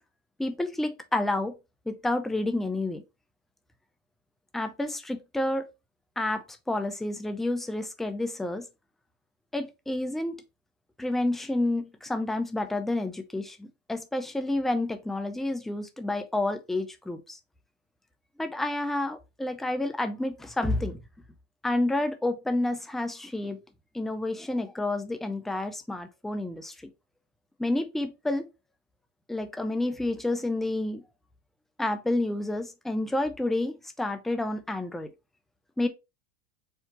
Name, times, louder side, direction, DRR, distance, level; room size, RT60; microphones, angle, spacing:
voice 1, 0.4-1.5 1.9-3.0 4.5-5.7 6.2-8.7 9.5-10.4 11.0-17.4 18.4-21.0 21.6-23.6 23.9-26.7 27.6-28.5 29.3-31.0 31.8-35.1 35.8-35.9, left 2 dB, ahead, 0.4 m, -29 dB
4.6 x 2.7 x 3.9 m
supercardioid pair, 120°, 39 cm